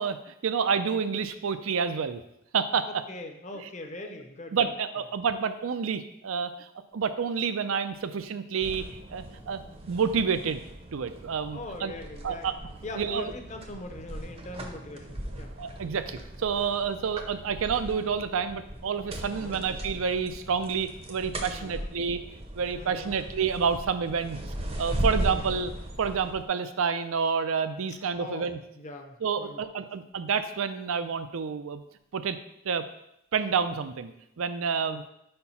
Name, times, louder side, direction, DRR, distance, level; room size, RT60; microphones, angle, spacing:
voice 1, 0.0-2.2 2.5-2.9 4.5-9.6 9.9-10.6 10.9-11.9 12.2-12.5 13.0-13.3 15.6-22.2 22.5-24.4 24.8-25.7 26.0-28.6 29.2-31.8 32.1-32.4 32.6-32.8 33.3-35.0, right 6 dB, 85° right, 11 dB, 0.5 m, -29 dB
voice 2, 2.8-4.7 11.5-12.5 12.8-15.5 19.3-19.6 21.5-21.9 22.7-23.2 25.3-25.7 28.2-29.6 34.8-35.1, left 1 dB, 35° left, 4 dB, 0.7 m, -41 dB
sound 1, 8.6-26.4, right 1 dB, 30° right, 0.7 m, -38 dB
4.7 x 4.4 x 5.5 m, 0.80 s
head